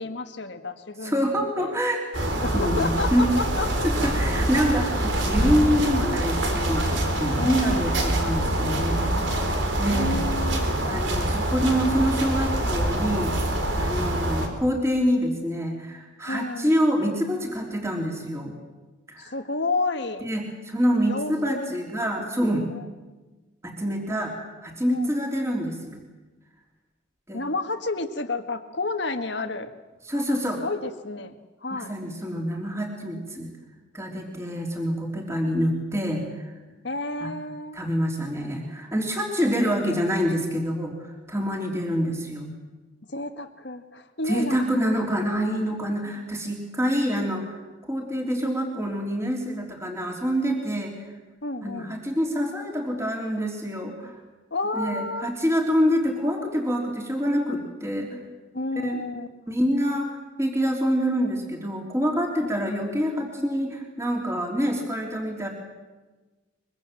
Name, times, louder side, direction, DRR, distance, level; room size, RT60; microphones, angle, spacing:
voice 1, 0.0-1.8 2.4-3.9 4.1-4.3 7.4-7.9 9.9-10.6 16.3-16.7 19.2-20.3 21.1-21.7 22.7-22.9 24.9-25.1 27.3-29.7 30.6-31.3 31.6-32.0 36.8-37.8 43.1-44.7 51.4-51.9 54.5-55.3 58.5-59.3 62.4-62.5, left 2 dB, 65° left, 8 dB, 1.6 m, -30 dB
voice 2, 1.0-2.0 2.5-3.3 3.8-10.2 10.8-13.3 13.7-18.5 19.1-19.3 20.2-22.7 23.6-24.3 24.6-26.0 27.3-27.4 30.1-30.6 31.7-33.5 33.9-36.5 37.2-37.3 37.7-42.5 44.3-47.6 47.9-51.1 51.6-54.2 54.7-58.2 58.8-59.0 59.5-65.5, equal, 15° right, 1 dB, 3.4 m, -26 dB
sound 1, 2.1-14.5, right 1 dB, 75° right, 4.2 m, -25 dB
24.0 x 23.5 x 7.7 m, 1.2 s
head